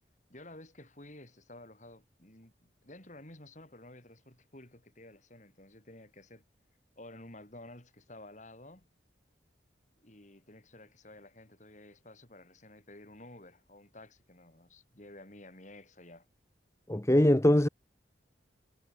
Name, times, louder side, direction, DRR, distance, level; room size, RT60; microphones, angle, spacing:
voice 1, 0.3-6.4 7.0-8.9 10.0-16.3, left 1 dB, 40° left, 7.2 m, -52 dB
voice 2, 16.9-17.7, left 1 dB, 15° left, 0.8 m, -22 dB
head